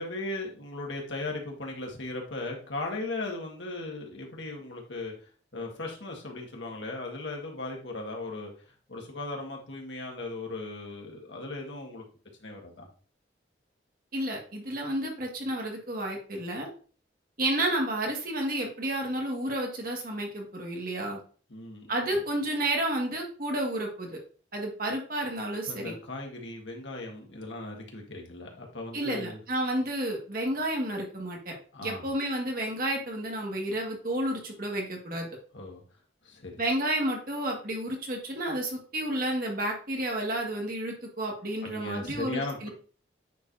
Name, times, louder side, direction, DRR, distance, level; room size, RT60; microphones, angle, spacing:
voice 1, 0.0-5.1 5.5-8.5 8.9-12.0 12.4-12.9 21.5-21.9 25.7-29.4 31.7-32.1 35.5-35.8 36.2-36.5 41.6-42.7, left 2 dB, 85° left, 0 dB, 1.7 m, -37 dB
voice 2, 14.1-16.7 17.4-21.2 21.9-24.2 24.5-25.9 28.9-31.5 31.8-35.3 36.6-42.7, right 1 dB, 50° right, 0 dB, 1.8 m, -31 dB
9.2 x 4.6 x 2.7 m, 0.40 s
head